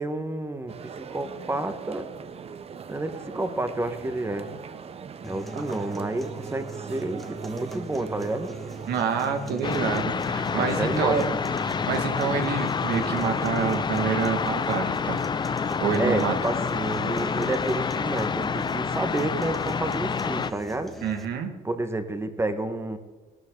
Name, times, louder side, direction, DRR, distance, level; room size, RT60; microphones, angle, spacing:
voice 1, 0.0-2.1 2.9-4.5 5.3-8.5 10.5-11.4 16.0-20.9 21.6-23.0, right 2 dB, 15° right, 8 dB, 1.5 m, -30 dB
sound 1, 0.7-9.9, right 6 dB, 35° right, 0.8 m, -41 dB
sound 2, 5.2-21.3, right 2 dB, ahead, 1.6 m, -41 dB
voice 2, 8.9-11.2 11.5-15.2 15.8-16.3 21.0-21.5, right 6 dB, 75° right, 5 dB, 2.1 m, -27 dB
sound 3, 9.6-20.5, left 6 dB, 25° left, 0.6 m, -28 dB
17.5 x 12.5 x 3.9 m, 1.2 s
cardioid pair, 110°, 17 cm